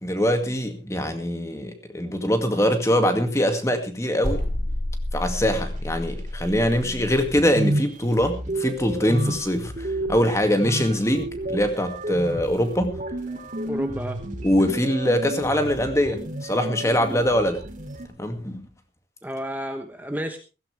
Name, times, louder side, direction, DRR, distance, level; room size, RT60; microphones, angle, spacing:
voice 1, 0.0-4.4 5.1-13.0 14.4-17.6 18.2-18.7, equal, 15° left, 7 dB, 2.1 m, -23 dB
sound 1, 4.2-7.3, left 1 dB, 85° left, 3.9 m, -29 dB
sound 2, 6.5-6.6 6.8-18.1, right 1 dB, 45° right, 2.7 m, -31 dB
voice 2, 13.7-14.2 19.2-20.4, equal, 10° right, 5 dB, 1.1 m, -31 dB
16.5 x 15.5 x 3.4 m, 0.31 s
head